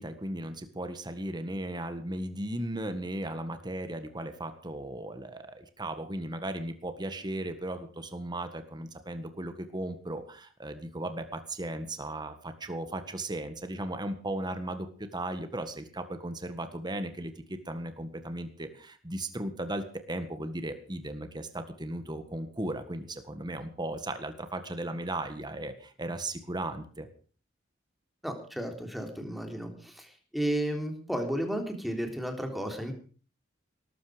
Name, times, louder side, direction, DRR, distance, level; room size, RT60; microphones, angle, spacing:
voice 1, 0.0-27.1, right 1 dB, 20° right, 9 dB, 1.7 m, -36 dB
voice 2, 28.2-30.1 30.3-32.9, right 1 dB, ahead, 4 dB, 3.5 m, -33 dB
18.5 x 14.0 x 5.1 m, 0.41 s
head